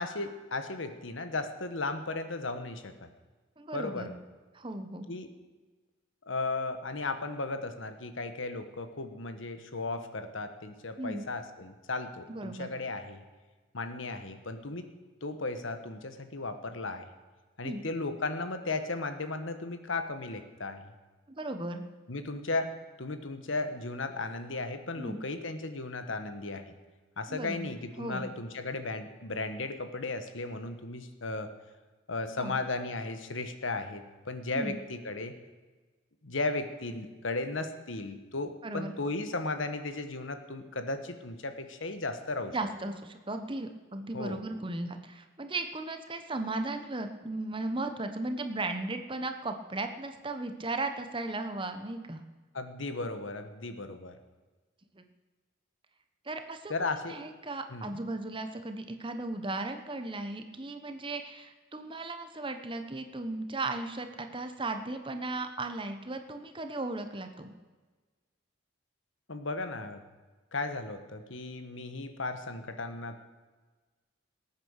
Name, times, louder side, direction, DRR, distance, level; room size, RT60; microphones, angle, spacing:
voice 1, 0.0-2.9 3.7-4.2 5.1-5.3 6.3-13.2 13.7-14.9 15.2-17.1 17.6-20.9 22.1-22.7 23.0-26.7 27.2-31.5 32.1-35.3 36.2-42.6 44.1-44.4 52.5-54.2 56.7-57.2 57.7-58.0 69.3-70.0 70.5-73.2, left 3 dB, 70° left, 9 dB, 1.4 m, -35 dB
voice 2, 3.6-4.1 4.5-5.1 11.0-11.3 12.3-12.7 17.6-17.8 21.4-21.8 25.0-25.2 27.3-27.7 28.0-28.3 32.4-32.6 34.5-34.8 38.6-39.0 42.5-52.2 55.0-55.1 56.2-56.7 57.1-67.5, right 2 dB, 25° right, 7 dB, 1.1 m, -36 dB
19.5 x 8.8 x 6.5 m, 1.3 s
head